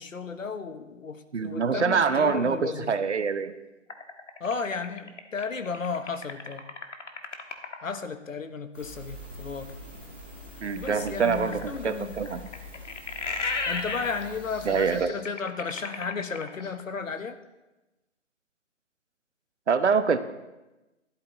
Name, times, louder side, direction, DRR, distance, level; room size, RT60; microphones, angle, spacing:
voice 1, 0.0-2.9 4.4-6.6 7.8-9.7 10.8-12.2 13.7-17.4, left 5 dB, 85° left, 10 dB, 1.2 m, -34 dB
voice 2, 1.3-3.5 10.6-12.5 14.6-15.1 19.7-20.2, right 5 dB, 60° right, 10 dB, 1.0 m, -25 dB
sound 1, 3.9-8.0 10.8-16.9, left 3 dB, 65° left, 1.6 m, -35 dB
sound 2, 8.7-15.0, left 1 dB, 10° right, 0.7 m, -44 dB
12.5 x 11.0 x 4.0 m, 1.1 s
hypercardioid pair, 165°, 38 cm